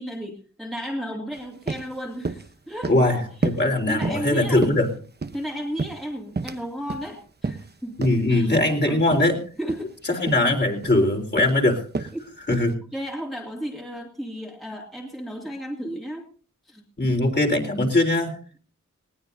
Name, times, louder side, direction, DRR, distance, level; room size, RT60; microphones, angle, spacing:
voice 1, 0.0-2.9 3.4-3.5 3.9-4.7 5.3-8.0 8.3-8.5 8.9-9.0 9.6-10.2 12.1-12.3 12.9-16.3 16.7-16.8, equal, ahead, 0 dB, 2.4 m, -34 dB
sound 1, 1.3-1.4 1.7-1.9 2.2-2.5 2.8-3.1 3.4-3.7 4.0-4.3 4.6-5.4 5.8-6.6 6.9-7.1 7.4-7.7 8.0-8.2 8.5-8.7 9.1-9.3 9.6-9.8 10.3-10.5 10.8-11.1 11.4-11.6 11.9-12.2 12.5-12.7, right 3 dB, 30° right, 0.9 m, -30 dB
voice 2, 2.9-4.9 8.0-9.4 10.2-12.1 12.5-12.7 17.0-18.4, left 2 dB, 35° left, 2 dB, 3.7 m, -21 dB
19.5 x 18.5 x 2.7 m, 0.40 s
wide cardioid pair, 110°, 31 cm